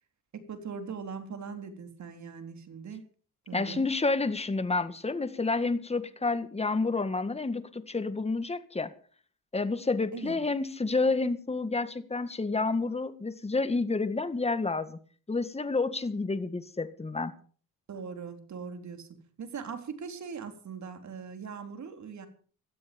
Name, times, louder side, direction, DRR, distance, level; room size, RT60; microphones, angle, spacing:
voice 1, 0.3-3.0 3.5-3.8 10.1-10.4 17.9-19.1 19.4-22.3, right 6 dB, 55° right, 7 dB, 3.9 m, -40 dB
voice 2, 3.5-8.9 9.5-15.0 15.3-17.3, left 3 dB, 15° left, 11 dB, 1.8 m, -29 dB
17.5 x 13.0 x 5.3 m, 0.43 s
cardioid pair, 100°, 35 cm